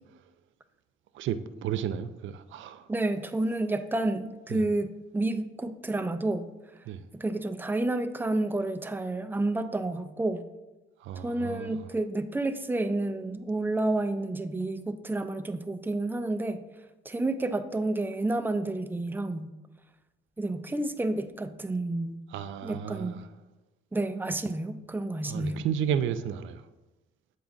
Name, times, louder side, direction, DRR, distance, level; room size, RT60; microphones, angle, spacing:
voice 1, 1.1-2.9 4.5-4.6 6.9-7.1 11.0-11.9 22.3-23.3 25.2-26.6, right 9 dB, 75° right, 0.4 m, -33 dB
voice 2, 2.9-6.5 7.1-10.4 11.2-16.6 17.1-19.5 20.4-22.2 22.6-23.3 23.9-25.6, right 2 dB, 10° right, 0.4 m, -30 dB
7.6 x 5.2 x 2.4 m
cardioid pair, 90°, 20 cm